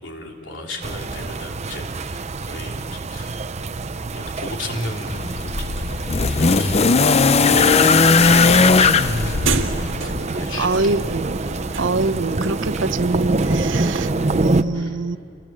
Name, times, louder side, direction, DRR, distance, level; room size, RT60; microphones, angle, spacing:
voice 1, 0.0-3.4 4.1-5.3 5.7-5.8 6.1-6.9 7.3-11.0 14.1-14.4 14.7-14.9, left 1 dB, 70° left, 1 dB, 3.4 m, -34 dB
sound 1, 0.8-14.6, right 2 dB, 35° right, 0.6 m, -26 dB
sound 2, 5.1-10.3 11.4-11.5, left 4 dB, 35° left, 0.6 m, -17 dB
sound 3, 7.7-13.7, right 4 dB, 85° right, 1.8 m, -32 dB
voice 2, 10.6-11.4 11.8-14.1 14.4-15.2, right 3 dB, 70° right, 13 dB, 0.8 m, -24 dB
30.0 x 22.5 x 7.6 m, 2.5 s
head